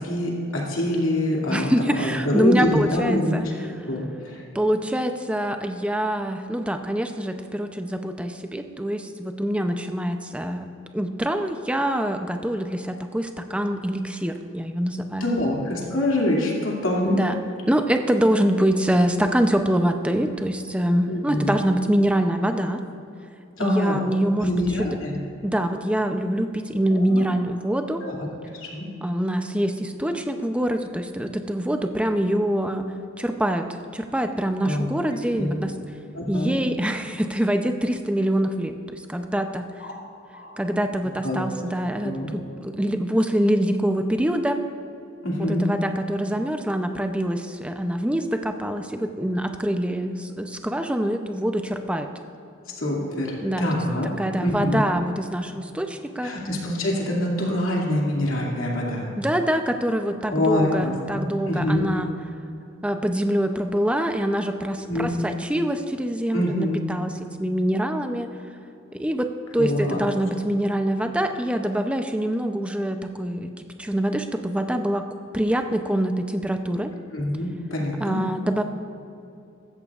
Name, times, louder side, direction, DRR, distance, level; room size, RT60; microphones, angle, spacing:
voice 1, 0.0-3.5 3.9-4.4 15.2-17.2 21.1-21.6 23.6-24.0 24.4-25.2 26.9-27.3 28.0-28.2 28.6-28.9 34.6-34.9 35.4-35.6 36.1-36.6 39.8-39.9 40.3-40.6 41.2-41.4 42.0-42.3 45.2-45.7 52.8-54.1 54.4-54.8 56.2-59.1 60.3-61.9 64.9-65.1 66.3-66.8 69.6-70.1 77.1-78.2, left 1 dB, 75° left, -2 dB, 2.4 m, -25 dB
voice 2, 1.5-3.5 4.5-15.3 17.0-17.4 17.7-22.8 23.6-24.9 25.4-28.0 29.0-32.8 33.2-35.7 36.3-38.8 39.1-39.7 40.6-44.6 45.4-52.1 53.4-53.6 54.2-56.3 59.2-62.1 62.8-67.1 67.4-68.3 68.9-75.0 75.3-76.9 78.0-78.6, right 1 dB, 5° right, 6 dB, 0.5 m, -25 dB
16.0 x 13.5 x 2.4 m, 2.7 s
head